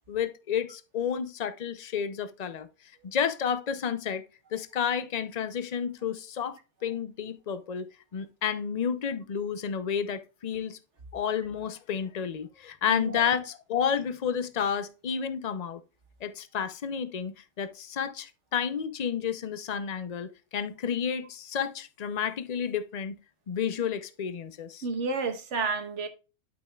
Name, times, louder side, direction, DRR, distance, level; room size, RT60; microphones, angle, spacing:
voice 1, 0.1-2.7 3.1-4.2 4.5-10.8 11.1-15.8 16.2-23.2 23.5-24.8, left 7 dB, 60° left, 0.4 m, -31 dB
voice 2, 12.9-13.2 24.8-26.1, right 4 dB, 55° right, 1.4 m, -30 dB
11.5 x 6.1 x 2.3 m
omnidirectional pair, 1.5 m